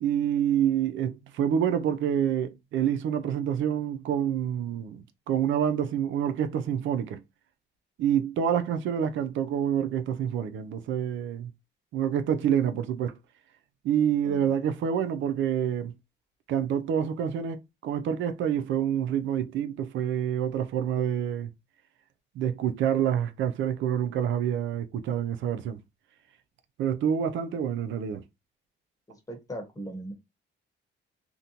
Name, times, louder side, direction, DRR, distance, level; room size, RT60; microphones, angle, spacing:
voice 1, 0.0-7.2 8.0-11.5 11.9-13.2 13.8-15.9 16.5-21.5 22.4-25.8 26.8-28.2, right 9 dB, 75° right, 0.4 m, -27 dB
voice 2, 29.1-30.1, right 1 dB, 15° left, 1.1 m, -39 dB
2.6 x 2.1 x 2.7 m
cardioid pair, 90°, 20 cm